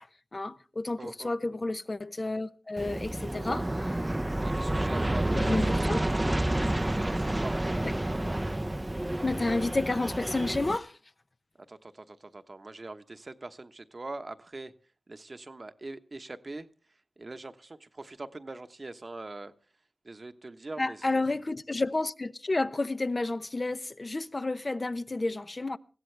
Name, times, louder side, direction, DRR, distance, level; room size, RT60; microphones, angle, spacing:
voice 1, 0.3-3.6 5.3-6.1 7.8-7.9 9.2-11.0 20.8-25.8, left 2 dB, 40° left, 0.8 m, -31 dB
voice 2, 1.0-1.3 3.3-3.6 4.4-6.1 6.4-7.6 11.6-14.7 15.1-16.7 17.2-19.5 20.0-21.2, right 2 dB, 45° right, 1.1 m, -43 dB
Aircraft, 2.8-10.8, right 1 dB, 20° right, 0.7 m, -29 dB
21.0 x 15.5 x 3.4 m
cardioid pair, 50°, 0 cm